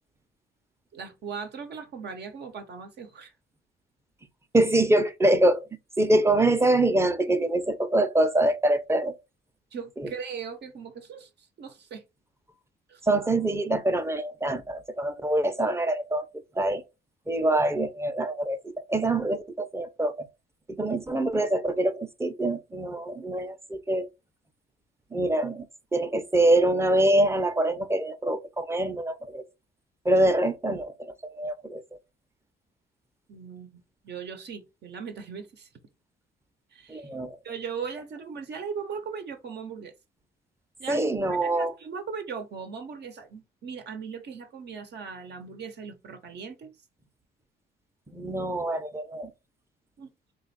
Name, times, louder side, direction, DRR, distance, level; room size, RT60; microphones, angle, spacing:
voice 1, 0.9-3.3 9.7-12.0 12.9-13.0 33.3-35.7 36.7-37.1 37.4-39.9 40.8-46.7 50.0-50.1, right 6 dB, 60° right, 0.7 m, -38 dB
voice 2, 4.5-5.7 6.0-9.2 10.0-10.1 13.0-16.3 16.5-16.8 17.3-20.3 20.7-24.1 25.1-25.7 25.9-29.4 30.0-31.8 36.9-37.4 40.9-41.7 48.1-49.3, right 1 dB, 15° right, 0.6 m, -25 dB
3.3 x 2.4 x 4.0 m
cardioid pair, 90°, 20 cm